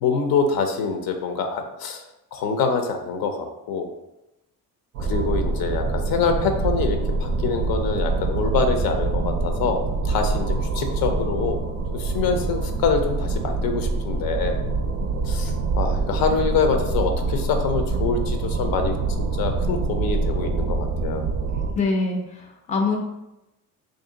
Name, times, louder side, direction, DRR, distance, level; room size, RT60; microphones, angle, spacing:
voice 1, 0.0-2.0 2.3-3.9 5.0-11.6 11.9-14.6 15.2-21.2, left 5 dB, 80° left, 5 dB, 0.6 m, -25 dB
sound 1, 4.9-21.7, right 3 dB, 50° right, 0.4 m, -25 dB
voice 2, 21.8-23.0, left 3 dB, 20° left, 1 dB, 0.4 m, -24 dB
3.1 x 2.6 x 3.8 m, 0.94 s
cardioid pair, 165°, 35 cm